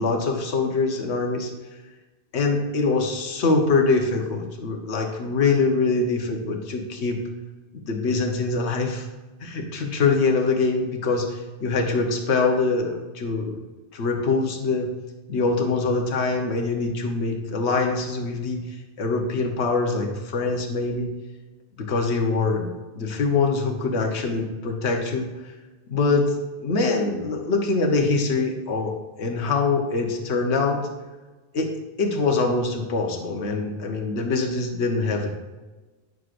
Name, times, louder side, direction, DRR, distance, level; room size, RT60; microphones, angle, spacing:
voice 1, 0.0-1.5 2.3-7.2 7.7-9.1 9.4-13.6 13.9-14.9 15.3-18.6 19.0-21.1 21.8-25.3 25.9-30.9 31.5-31.7 32.0-35.4, left 3 dB, 75° left, 2 dB, 1.2 m, -24 dB
9.2 x 6.2 x 2.5 m, 1.2 s
omnidirectional pair, 1.1 m